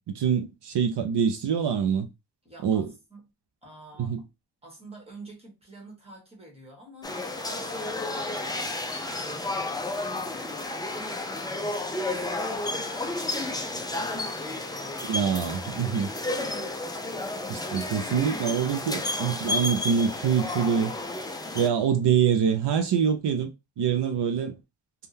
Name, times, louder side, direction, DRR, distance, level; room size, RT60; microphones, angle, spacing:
voice 1, 0.0-2.1 2.6-2.9 4.0-4.2 15.1-16.1 17.5-21.0 21.5-23.5 23.8-24.6, right 7 dB, 75° right, 0.5 m, -25 dB
voice 2, 2.4-2.8 3.1-3.2 3.6-4.1 4.6-8.7 9.2-11.5 12.0-16.2, right 1 dB, 15° right, 1.3 m, -49 dB
sound 1, 7.0-21.7, left 2 dB, 10° left, 0.3 m, -32 dB
3.5 x 2.2 x 2.6 m
wide cardioid pair, 155°, 41 cm